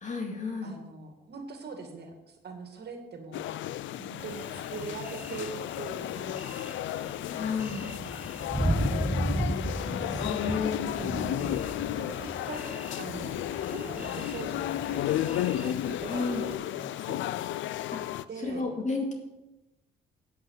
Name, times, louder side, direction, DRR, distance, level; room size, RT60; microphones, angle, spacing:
voice 1, 0.0-0.8 7.3-7.9 9.1-10.9 16.1-16.5 17.9-18.0 18.4-19.1, left 4 dB, 40° left, 2 dB, 2.2 m, -33 dB
voice 2, 0.6-3.4 4.0-6.6 7.4-8.1 8.7-9.2 10.1-10.6 11.0-11.6 11.9-13.4 13.7-15.2 15.5-16.2 16.6-17.3 18.3-18.7, right 4 dB, 55° right, 4 dB, 2.3 m, -42 dB
sound 1, 3.3-18.2, left 13 dB, 75° left, 0.4 m, -33 dB
Thunder, 4.2-16.6, right 1 dB, 10° right, 0.5 m, -36 dB
8.6 x 8.2 x 5.9 m, 0.98 s
cardioid pair, 90°, 20 cm